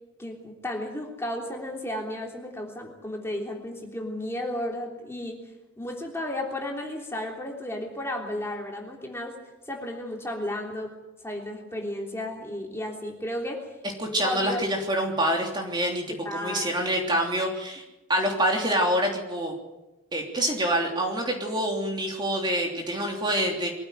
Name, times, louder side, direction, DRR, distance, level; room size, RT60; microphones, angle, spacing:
voice 1, 0.2-5.4 5.8-9.4 9.7-10.9 11.2-13.7 14.2-14.6 16.2-16.8, left 1 dB, 10° left, 0 dB, 3.4 m, -33 dB
voice 2, 14.0-17.8 18.1-19.5 20.1-23.7, right 1 dB, 20° right, 1 dB, 3.2 m, -26 dB
23.5 x 15.0 x 9.2 m, 1.0 s
head